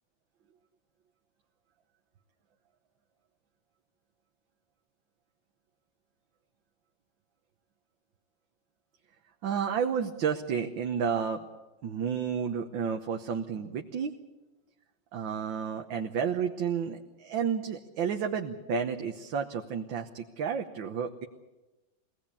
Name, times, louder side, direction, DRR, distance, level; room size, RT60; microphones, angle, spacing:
voice 1, 9.4-11.5 11.8-14.1 15.1-21.3, right 7 dB, 85° right, 4 dB, 1.8 m, -31 dB
24.0 x 18.0 x 8.5 m, 1.1 s
omnidirectional pair, 2.0 m